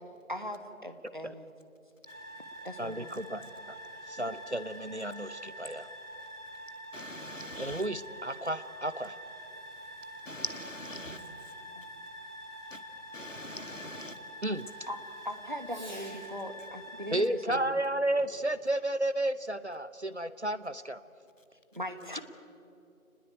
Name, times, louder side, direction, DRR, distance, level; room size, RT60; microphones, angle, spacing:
voice 1, 0.3-1.5 2.6-3.1 10.9-11.3 11.7-11.8 14.9-15.0 15.2-17.7 21.7-22.2, equal, 35° right, 1.5 m, -40 dB
sound 1, 2.1-17.2, equal, 75° right, 7.7 m, -46 dB
voice 2, 2.8-3.4 4.1-5.9 7.6-9.2 14.4-14.7 17.1-21.0, right 1 dB, 50° right, 0.8 m, -32 dB
voice 3, 6.9-7.8 10.3-11.2 12.7-12.8 13.1-14.2, left 1 dB, 60° left, 2.3 m, -42 dB
Fireworks, 9.4-16.5 18.1-18.6, equal, 30° left, 3.3 m, -58 dB
30.0 x 20.0 x 9.1 m
figure-of-eight pair, 180°, 43 cm